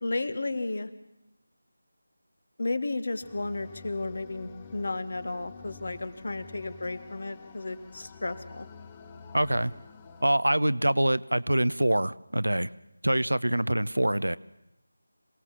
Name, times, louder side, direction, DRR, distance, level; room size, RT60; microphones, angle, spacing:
voice 1, 0.0-0.9 2.6-8.7, left 2 dB, 55° left, 12 dB, 1.7 m, -33 dB
sound 1, 3.2-10.3, left 5 dB, 20° left, 1.1 m, -49 dB
voice 2, 9.3-9.7 10.2-12.7 13.0-14.4, right 1 dB, 85° right, 16 dB, 0.8 m, -25 dB
27.0 x 18.0 x 7.5 m, 0.87 s
figure-of-eight pair, 165°, 0 cm